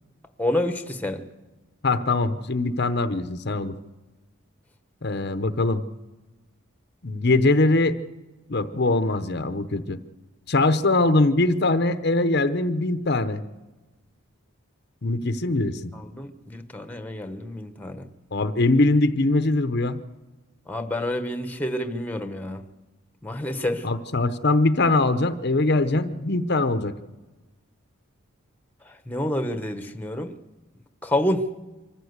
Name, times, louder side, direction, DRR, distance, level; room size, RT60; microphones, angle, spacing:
voice 1, 0.4-1.2 15.9-18.1 20.7-22.6 23.2-23.8 28.9-30.3 31.0-31.5, left 1 dB, 5° left, 9 dB, 1.0 m, -28 dB
voice 2, 1.8-3.7 5.0-5.8 7.0-8.0 8.5-10.0 10.5-13.4 15.0-15.9 18.3-20.0 23.8-26.9, left 2 dB, 50° left, 11 dB, 0.8 m, -22 dB
24.5 x 14.5 x 8.1 m, 1.2 s
head